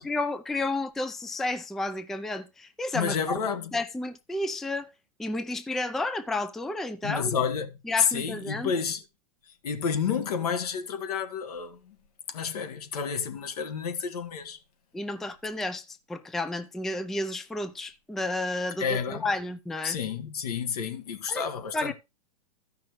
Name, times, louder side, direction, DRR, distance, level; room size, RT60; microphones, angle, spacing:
voice 1, 0.0-3.4 3.7-4.9 5.2-7.4 7.9-8.7 14.9-20.0 21.3-21.4 21.7-21.9, left 2 dB, ahead, 0.4 m, -31 dB
voice 2, 2.9-3.7 7.0-9.0 9.6-12.0 12.3-14.6 18.8-19.3 19.8-21.9, left 6 dB, 75° left, 1.6 m, -30 dB
14.0 x 5.8 x 3.2 m
hypercardioid pair, 130°, 20 cm